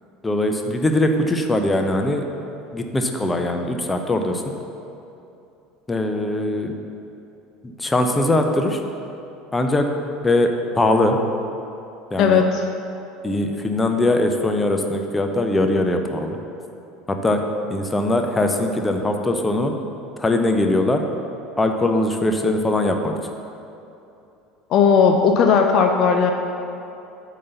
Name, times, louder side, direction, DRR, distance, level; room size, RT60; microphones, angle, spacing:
voice 1, 0.2-2.2 2.7-4.4 5.9-6.7 7.8-8.8 9.5-9.9 10.2-11.2 12.1-12.4 13.2-16.4 17.1-17.4 17.7-19.7 20.2-21.0 21.6-23.1, left 1 dB, 15° left, 4 dB, 0.8 m, -21 dB
voice 2, 12.2-12.7 24.7-26.3, left 6 dB, 45° left, 3 dB, 0.5 m, -16 dB
8.5 x 4.1 x 6.9 m, 2.8 s
figure-of-eight pair, 70°, 0 cm